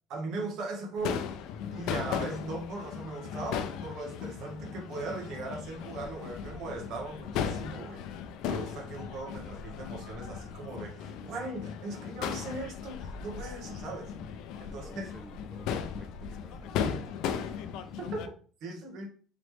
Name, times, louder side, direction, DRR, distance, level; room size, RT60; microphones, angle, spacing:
voice 1, 0.1-1.2 1.7-8.0 8.4-14.1 14.6-15.1 18.0-18.2 18.6-19.1, right 2 dB, 60° right, 1.3 m, -39 dB
Crowd / Fireworks, 1.0-18.3, left 7 dB, 70° left, 0.4 m, -37 dB
voice 2, 14.7-18.0, right 1 dB, 5° right, 0.4 m, -53 dB
4.0 x 3.1 x 3.2 m
cardioid pair, 135°, 0 cm